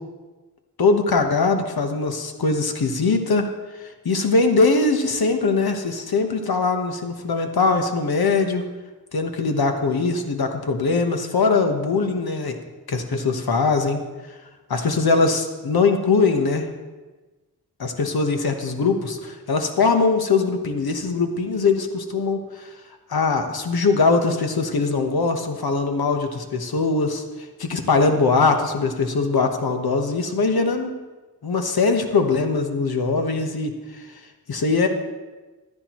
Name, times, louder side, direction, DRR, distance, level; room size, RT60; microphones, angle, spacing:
voice 1, 0.8-3.5 4.0-8.7 9.1-12.6 12.9-14.0 14.7-16.7 17.8-22.7 23.1-27.2 27.6-30.9 31.4-34.0 34.5-34.9, left 4 dB, 70° left, 5 dB, 1.3 m, -21 dB
14.5 x 12.0 x 3.1 m, 1.2 s
wide cardioid pair, 90°, 38 cm